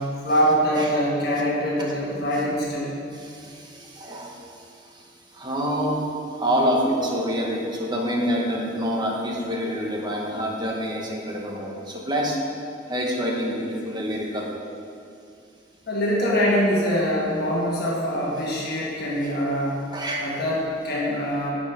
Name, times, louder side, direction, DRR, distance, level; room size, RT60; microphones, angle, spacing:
voice 1, 0.0-2.9 15.9-19.8 20.2-21.5, equal, 60° left, -4 dB, 1.2 m, -24 dB
voice 2, 3.1-4.6 4.9-5.0 5.3-12.4 12.9-14.5 19.2-19.3 19.9-20.2, equal, 25° right, -1 dB, 1.0 m, -27 dB
7.1 x 5.0 x 5.5 m, 2.4 s
head